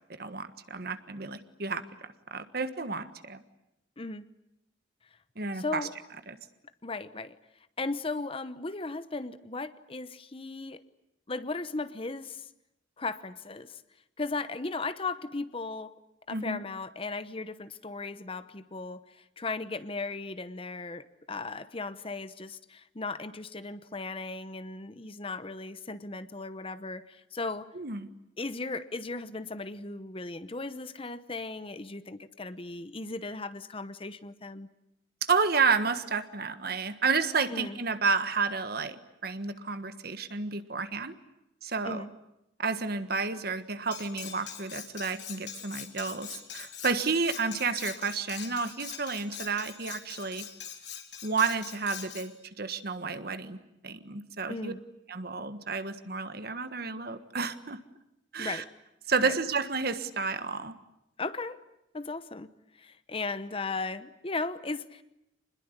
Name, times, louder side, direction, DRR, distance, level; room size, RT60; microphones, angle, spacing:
voice 1, 0.1-3.4 5.4-5.9 6.3-6.4 16.3-16.6 27.7-28.1 35.3-39.0 39.2-41.1 41.6-42.0 42.6-50.4 51.2-53.6 53.8-54.7 55.1-57.8 58.3-58.6 59.1-60.7, right 4 dB, 55° right, 10 dB, 1.5 m, -31 dB
voice 2, 4.0-4.3 5.5-5.9 6.8-7.4 7.8-10.8 11.3-12.5 13.0-13.8 14.2-15.9 16.3-27.7 28.4-34.7 37.5-37.8 41.8-42.1 54.5-54.8 58.4-58.7 59.2-59.3 61.2-61.6 61.9-62.5 62.8-65.0, left 3 dB, 30° left, 13 dB, 0.9 m, -36 dB
Cutlery silverware, 43.9-52.3, left 9 dB, 65° left, 3.4 m, -43 dB
26.0 x 21.0 x 9.7 m, 0.87 s
head